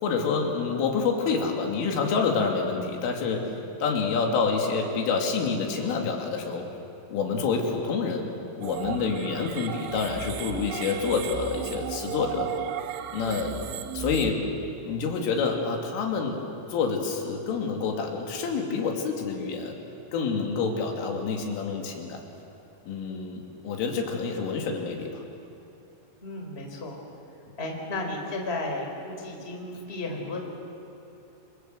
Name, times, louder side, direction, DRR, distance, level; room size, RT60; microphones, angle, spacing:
voice 1, 0.0-3.6 3.8-6.7 7.1-8.3 8.6-12.5 13.1-13.5 13.9-14.4 14.8-16.4 16.7-19.7 20.1-22.2 22.9-25.2, left 5 dB, 80° left, 1 dB, 5.1 m, -27 dB
sound 1, 8.6-14.3, right 11 dB, 80° right, 3.2 m, -35 dB
voice 2, 26.2-27.0 27.6-30.5, left 2 dB, 15° left, 1 dB, 3.6 m, -34 dB
27.5 x 27.0 x 8.0 m, 2.9 s
omnidirectional pair, 5.7 m